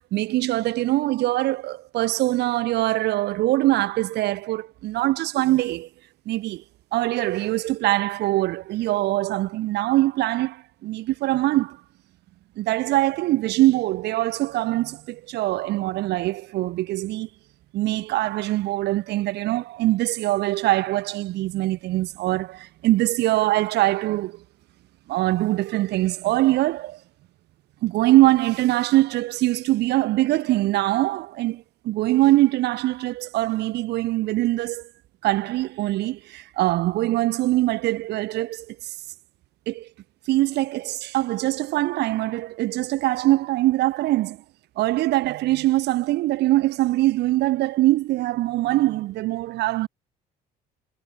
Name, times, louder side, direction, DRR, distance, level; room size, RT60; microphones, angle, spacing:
voice 1, 0.0-5.9 6.3-6.6 6.9-11.8 12.6-17.3 17.7-24.4 25.1-27.0 27.8-34.9 35.2-38.9 39.7-39.9 40.3-44.4 44.8-49.9, right 17 dB, 80° right, 5.8 m, -23 dB
cardioid pair, 110°, 17 cm